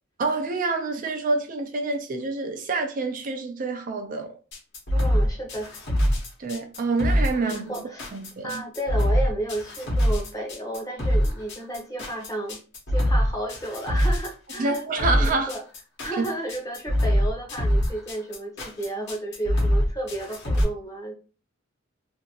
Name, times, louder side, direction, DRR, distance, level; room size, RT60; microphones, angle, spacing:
voice 1, 0.2-4.4 6.4-7.8 8.1-8.5 14.6-15.5 16.2-16.3, right 3 dB, 40° right, 0.4 m, -27 dB
sound 1, 4.5-20.6, equal, 60° left, 1.1 m, -24 dB
voice 2, 4.9-5.7 7.4-8.1 8.4-12.6 12.9-15.6 16.0-21.1, right 1 dB, 15° left, 0.8 m, -33 dB
2.7 x 2.6 x 2.8 m
head